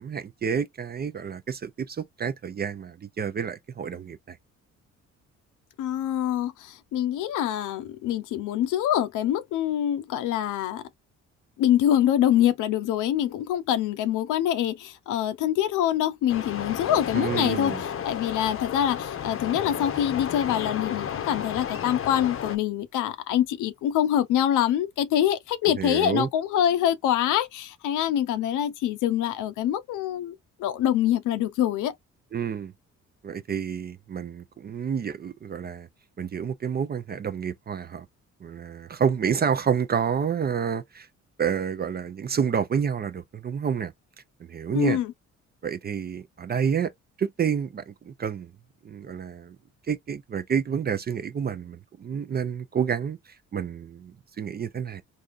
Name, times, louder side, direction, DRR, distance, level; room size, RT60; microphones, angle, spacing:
voice 1, 0.0-4.4 17.1-17.8 25.8-26.3 32.3-32.7 33.2-35.9 36.2-38.1 38.4-41.1 41.4-43.9 44.5-45.0 45.6-46.9 47.2-48.5 48.8-49.6 49.9-55.0, right 7 dB, 35° right, 0.4 m, -29 dB
voice 2, 5.8-10.8 11.6-30.3 30.6-31.9 44.7-45.1, left 11 dB, 90° left, 0.6 m, -25 dB
sound 1, 16.3-22.6, left 8 dB, 45° left, 0.7 m, -33 dB
3.5 x 2.7 x 2.4 m
cardioid pair, 90°, 30 cm